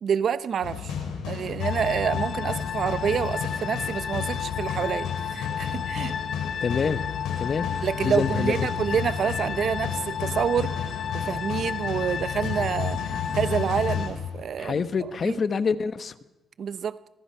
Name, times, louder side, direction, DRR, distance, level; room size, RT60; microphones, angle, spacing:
voice 1, 0.0-0.9 1.3-6.1 7.8-10.7 11.1-14.8 15.2-15.4 16.6-17.0, right 7 dB, 55° right, 14 dB, 0.9 m, -28 dB
sound 1, 0.6-14.8, left 7 dB, 90° left, 4.9 m, -32 dB
sound 2, 1.6-14.1, left 7 dB, 60° left, 1.7 m, -33 dB
voice 2, 6.4-7.0 7.4-7.7 8.0-8.5 14.6-16.1, left 5 dB, 45° left, 12 dB, 1.2 m, -26 dB
24.0 x 21.0 x 5.8 m, 0.99 s
cardioid pair, 90°, 0 cm